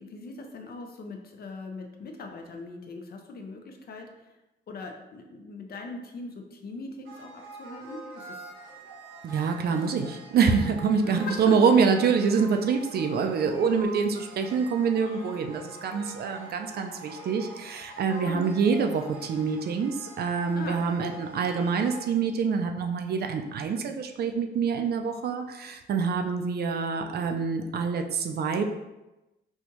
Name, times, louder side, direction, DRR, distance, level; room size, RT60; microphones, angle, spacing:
voice 1, 0.0-4.3 4.7-8.4 11.0-11.5 11.8-11.9 18.2-18.5 20.5-21.2, left 3 dB, 50° left, 3 dB, 0.6 m, -40 dB
sound 1, 7.0-22.0, right 2 dB, 90° right, 0.8 m, -45 dB
voice 2, 9.2-28.6, right 5 dB, 55° right, 5 dB, 0.4 m, -26 dB
4.2 x 2.3 x 2.9 m, 1.0 s
cardioid pair, 90°, 20 cm